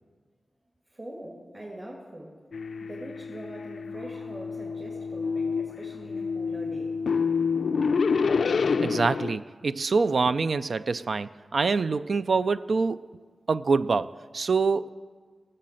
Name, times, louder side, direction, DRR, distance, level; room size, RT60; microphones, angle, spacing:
voice 1, 0.9-2.4 2.8-7.0, right 1 dB, 25° right, -3 dB, 2.2 m, -43 dB
sound 1, 2.5-9.4, left 5 dB, 75° left, 0.3 m, -28 dB
voice 2, 8.8-13.1 13.5-14.9, right 4 dB, 65° right, 14 dB, 0.3 m, -25 dB
17.5 x 6.6 x 7.6 m, 1.5 s
wide cardioid pair, 95°, 0 cm